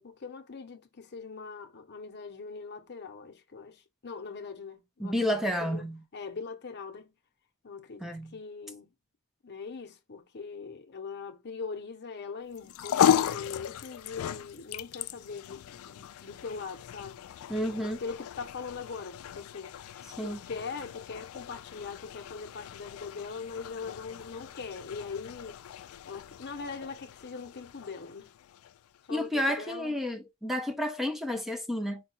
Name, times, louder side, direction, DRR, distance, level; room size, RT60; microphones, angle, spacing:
voice 1, 0.0-5.9 6.1-7.1 7.6-8.9 9.4-17.2 17.6-28.3 29.1-30.0, left 5 dB, 50° left, 0.7 m, -41 dB
voice 2, 5.0-6.0 8.0-8.3 17.5-18.0 20.2-20.4 29.1-32.0, equal, ahead, 0.4 m, -31 dB
sound 1, 12.5-29.0, left 9 dB, 70° left, 0.3 m, -35 dB
4.6 x 2.2 x 4.2 m
head